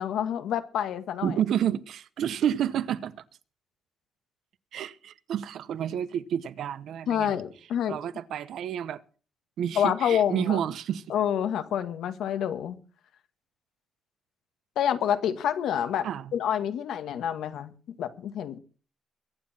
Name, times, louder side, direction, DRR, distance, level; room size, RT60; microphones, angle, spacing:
voice 1, 0.0-1.4 7.1-8.0 9.8-10.6 11.1-12.8 14.8-18.6, left 9 dB, 85° left, 1.8 m, -28 dB
voice 2, 1.2-3.2 4.7-7.3 7.9-9.0 9.6-11.0 16.0-16.2, right 9 dB, 70° right, 1.0 m, -29 dB
23.0 x 9.7 x 4.4 m
cardioid pair, 155°, 0 cm